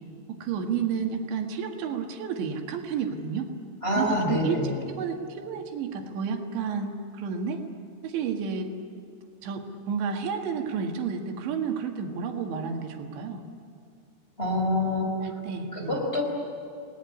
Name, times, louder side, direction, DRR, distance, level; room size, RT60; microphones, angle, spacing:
voice 1, 0.4-3.5 4.0-4.6 5.0-7.6 8.0-8.7 9.4-13.4 15.2-16.0, right 6 dB, 90° right, 3 dB, 4.1 m, -31 dB
voice 2, 3.8-4.8 14.4-15.3 15.7-16.2, left 1 dB, 15° left, -1 dB, 4.7 m, -26 dB
29.5 x 19.5 x 9.8 m, 2.4 s
omnidirectional pair, 5.0 m